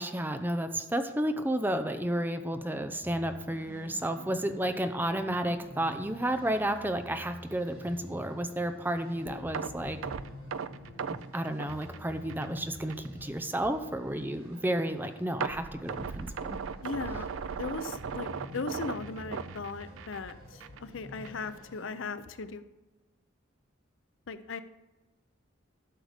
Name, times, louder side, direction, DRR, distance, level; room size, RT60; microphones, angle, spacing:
voice 1, 0.0-10.0 11.1-16.6, right 1 dB, 10° right, 8 dB, 0.6 m, -32 dB
sound 1, 3.0-21.8, left 1 dB, 50° right, 3.1 m, -50 dB
sound 2, 9.3-10.5 11.7-15.4 16.3-17.5 18.3-22.2, left 1 dB, 35° left, 0.8 m, -52 dB
sound 3, 9.5-12.6 12.9-13.1 13.5-13.6 15.4-20.3 20.6-20.8 21.2-21.3, right 6 dB, 80° right, 0.5 m, -37 dB
voice 2, 16.8-17.3 17.6-22.6 24.3-24.6, left 4 dB, 70° left, 12 dB, 0.6 m, -38 dB
12.0 x 6.6 x 5.1 m, 1.1 s
head